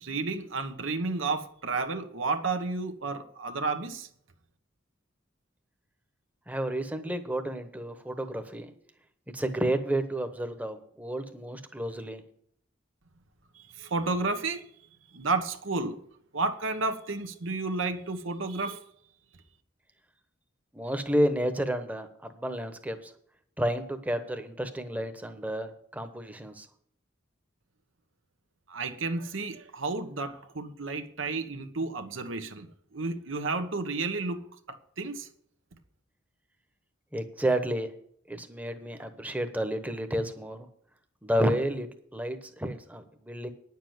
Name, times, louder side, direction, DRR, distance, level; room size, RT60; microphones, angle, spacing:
voice 1, 0.0-4.1 13.5-14.7 15.1-16.0 16.3-18.8 28.7-35.3, right 3 dB, 85° right, 8 dB, 1.2 m, -32 dB
voice 2, 6.5-8.7 9.3-12.2 20.7-23.1 23.6-26.7 37.1-37.9 38.3-40.7 41.2-41.9 42.1-43.5, right 1 dB, 10° right, 8 dB, 1.0 m, -31 dB
10.0 x 7.2 x 7.8 m, 0.66 s
head